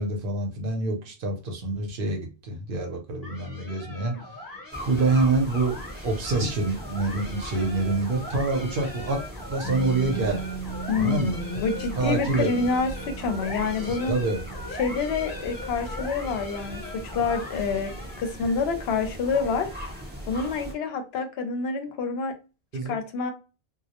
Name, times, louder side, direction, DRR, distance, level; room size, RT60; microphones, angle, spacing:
voice 1, 0.0-4.2 4.9-9.2 9.5-10.4 11.0-11.4 12.0-12.5 13.9-14.4 22.7-22.9, right 3 dB, 60° right, 0.8 m, -26 dB
sound 1, 3.2-18.4, left 2 dB, 20° left, 0.7 m, -40 dB
sound 2, 4.7-20.7, equal, 15° right, 0.5 m, -39 dB
Piano, 9.6-16.9, right 6 dB, 50° left, 0.4 m, -40 dB
voice 2, 10.9-14.1 14.8-19.7 20.3-22.3 22.9-23.3, left 4 dB, 70° left, 0.8 m, -27 dB
2.2 x 2.0 x 2.8 m
omnidirectional pair, 1.1 m